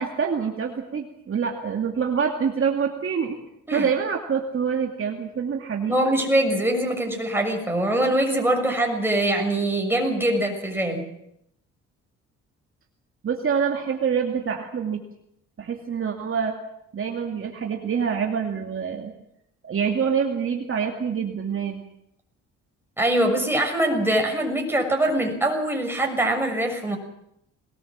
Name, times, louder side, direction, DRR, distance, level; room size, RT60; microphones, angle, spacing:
voice 1, 0.0-3.4 3.7-6.1 13.2-15.0 15.6-16.5 16.9-19.1 19.6-21.8, right 6 dB, 45° right, 2 dB, 2.5 m, -26 dB
voice 2, 5.9-11.0 23.0-27.0, right 1 dB, 5° right, 2 dB, 6.5 m, -23 dB
21.5 x 19.5 x 7.5 m, 0.76 s
cardioid pair, 90°, 30 cm